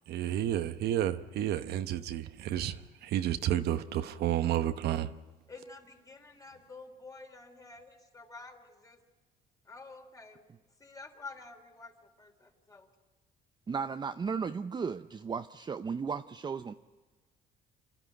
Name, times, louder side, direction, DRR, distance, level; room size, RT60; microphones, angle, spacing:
voice 1, 0.1-5.1, right 11 dB, 70° right, 1.0 m, -31 dB
voice 2, 5.5-9.0 9.7-10.5 10.8-12.9, left 3 dB, 20° left, 3.2 m, -49 dB
voice 3, 13.7-16.7, right 5 dB, 25° right, 0.6 m, -35 dB
28.0 x 12.5 x 9.2 m
cardioid pair, 110°, 17 cm